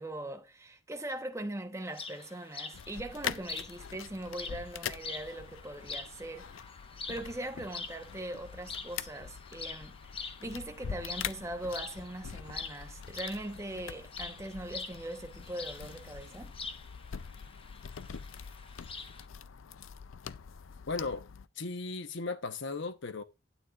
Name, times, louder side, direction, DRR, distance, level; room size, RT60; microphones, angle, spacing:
voice 1, 0.0-6.5 7.1-16.5, right 1 dB, 15° right, 1.0 m, -41 dB
sound 1, 1.9-19.3, left 5 dB, 30° left, 1.0 m, -46 dB
sound 2, 2.7-21.5, left 7 dB, 80° left, 0.5 m, -44 dB
voice 2, 20.9-21.3 21.5-23.2, left 3 dB, 65° left, 0.9 m, -36 dB
12.5 x 9.2 x 2.4 m
head